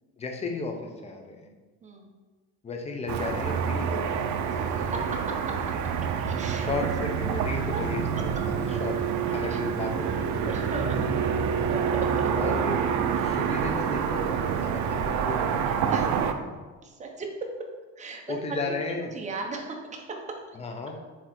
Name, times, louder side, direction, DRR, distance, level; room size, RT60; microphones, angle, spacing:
voice 1, 0.2-1.5 2.6-4.3 6.6-10.6 12.4-12.8 13.1-15.9 16.3-16.4 18.3-19.1 20.6-21.0, left 3 dB, 20° left, 3 dB, 0.7 m, -34 dB
Car passing by / Traffic noise roadway noise, 3.1-16.3, right 7 dB, 60° right, 0.6 m, -27 dB
voice 2, 4.5-5.6 6.2-6.6 7.6-7.8 8.2-8.4 9.5-9.6 10.4-11.3 11.7-12.3 15.9-16.2 16.8-17.7 18.0-18.4 18.7-20.6 20.9-21.0, right 3 dB, 20° right, 1 dB, 0.9 m, -37 dB
7.7 x 3.1 x 4.4 m, 1.3 s
cardioid pair, 130°, 32 cm